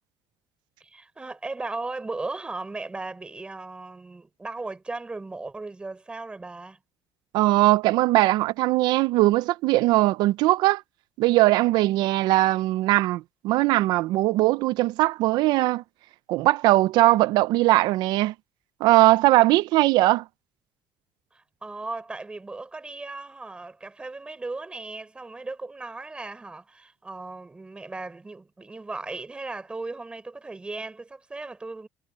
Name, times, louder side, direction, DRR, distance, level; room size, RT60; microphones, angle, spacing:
voice 1, 0.8-6.8 21.3-31.9, right 3 dB, 15° right, 4.6 m, -37 dB
voice 2, 7.3-10.8 11.2-15.8 16.3-18.3 18.8-20.2, right 17 dB, 70° right, 0.6 m, -20 dB
cardioid pair, 140°, 7 cm